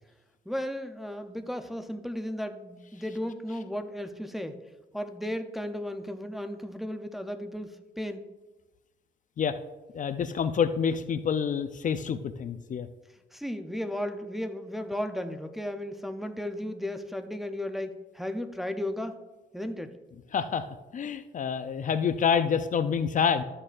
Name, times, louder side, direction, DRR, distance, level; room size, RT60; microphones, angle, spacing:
voice 1, 0.5-4.6 4.9-8.3 13.3-19.2 19.5-20.0, left 1 dB, ahead, 7 dB, 0.6 m, -35 dB
voice 2, 9.9-12.9 20.3-20.7 20.9-23.4, left 7 dB, 45° left, 10 dB, 0.5 m, -27 dB
12.5 x 6.6 x 2.5 m, 1.1 s
cardioid pair, 100°, 18 cm